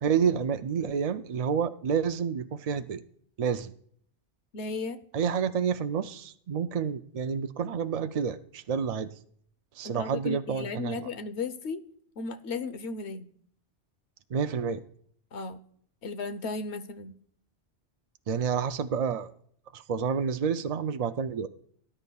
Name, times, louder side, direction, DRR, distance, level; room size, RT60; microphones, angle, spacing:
voice 1, 0.0-3.0 3.4-3.7 5.1-9.1 9.8-11.1 14.3-14.8 18.3-19.3 19.7-21.5, right 7 dB, 65° right, 9 dB, 0.3 m, -29 dB
voice 2, 4.5-5.0 9.8-11.8 12.2-13.3 15.3-15.6 16.0-17.1, left 4 dB, 70° left, 10 dB, 1.1 m, -35 dB
19.0 x 9.8 x 2.3 m, 0.62 s
omnidirectional pair, 1.2 m